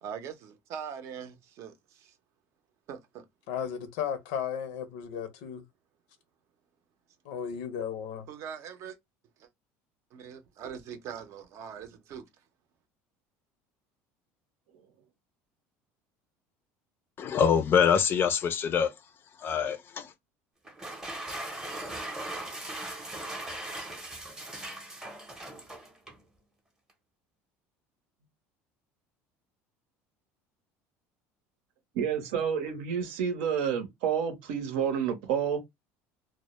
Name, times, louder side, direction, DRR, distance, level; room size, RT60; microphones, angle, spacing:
voice 1, 0.0-2.1 2.9-3.2 8.3-9.0 9.4-9.5 10.1-12.2, right 7 dB, 55° right, 0.6 m, -42 dB
voice 2, 3.5-5.6 7.2-8.3, left 8 dB, 80° left, 0.6 m, -34 dB
voice 3, 17.2-18.9 19.4-20.1, left 7 dB, 40° left, 0.4 m, -25 dB
sound 1, 20.7-26.3, right 1 dB, 10° right, 0.6 m, -39 dB
voice 4, 31.9-35.6, right 7 dB, 85° right, 0.8 m, -29 dB
2.1 x 2.0 x 2.9 m
cardioid pair, 125°, 6 cm